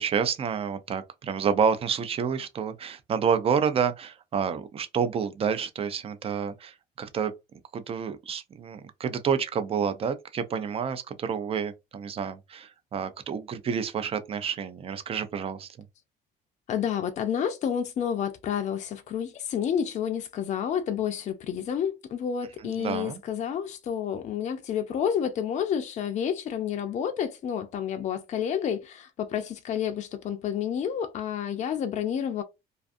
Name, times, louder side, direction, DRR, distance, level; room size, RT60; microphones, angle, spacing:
voice 1, 0.0-7.3 7.7-15.7 22.6-23.2, right 7 dB, 35° right, 0.4 m, -29 dB
voice 2, 16.7-32.4, left 8 dB, 45° left, 0.4 m, -30 dB
2.5 x 2.4 x 2.5 m
cardioid pair, 110°, 17 cm